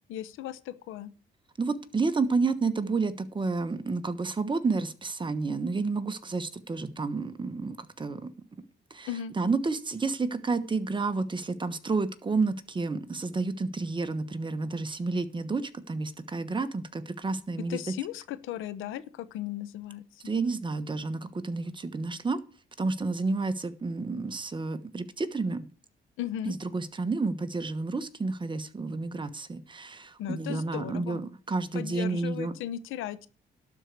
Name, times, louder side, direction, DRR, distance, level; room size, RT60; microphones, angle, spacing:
voice 1, 0.1-1.1 9.1-9.3 17.7-20.0 26.2-26.5 30.2-31.2 31.7-33.3, left 11 dB, 90° left, 15 dB, 0.8 m, -36 dB
voice 2, 1.6-8.3 8.9-17.9 20.2-22.4 22.8-25.7 26.4-32.5, right 3 dB, 25° right, 11 dB, 1.2 m, -30 dB
12.0 x 4.6 x 8.1 m, 0.38 s
cardioid pair, 90°, 20 cm